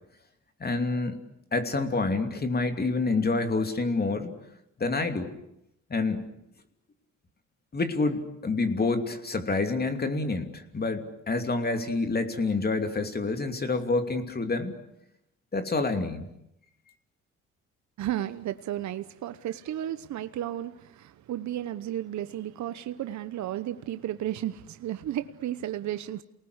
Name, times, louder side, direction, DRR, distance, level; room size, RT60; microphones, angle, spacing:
voice 1, 0.6-1.2 1.5-4.3 4.8-5.3 5.9-6.2 7.7-14.7 15.5-16.3, left 3 dB, 30° left, 7 dB, 2.9 m, -28 dB
voice 2, 18.0-26.2, right 12 dB, 70° right, 11 dB, 1.0 m, -33 dB
28.5 x 19.5 x 8.1 m, 0.82 s
cardioid pair, 90°, 30 cm